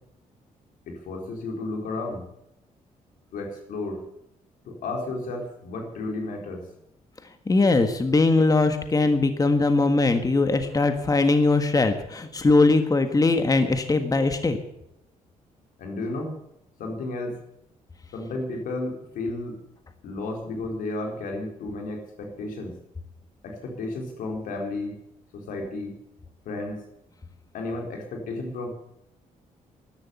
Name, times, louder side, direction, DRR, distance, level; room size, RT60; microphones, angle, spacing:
voice 1, 0.9-2.3 3.3-4.0 4.6-6.7 15.8-16.4 16.8-17.4 18.1-19.6 20.0-22.8 23.4-25.0 25.3-26.0 26.4-26.8 27.5-28.7, left 2 dB, 85° left, 2 dB, 4.2 m, -32 dB
voice 2, 7.5-14.6, left 3 dB, 25° left, 8 dB, 1.6 m, -21 dB
13.5 x 12.0 x 8.2 m, 0.81 s
cardioid pair, 80°, 14 cm